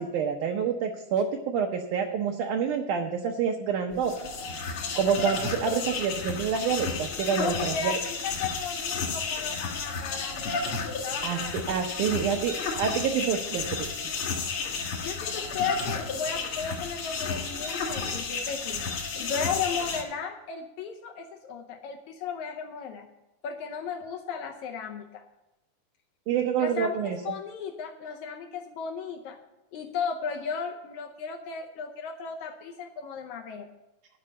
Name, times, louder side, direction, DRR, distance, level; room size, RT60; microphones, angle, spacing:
voice 1, 0.0-4.3 5.0-7.9 11.2-14.0 26.3-27.2, right 7 dB, 75° right, 2 dB, 2.0 m, -28 dB
sound 1, 3.9-20.0, left 4 dB, 60° left, 1.4 m, -32 dB
voice 2, 7.4-11.6 15.0-18.9 19.2-23.1 23.4-25.2 26.6-29.4 29.7-33.7, left 6 dB, 80° left, 4 dB, 1.7 m, -35 dB
11.0 x 5.4 x 8.5 m, 0.98 s
omnidirectional pair, 4.3 m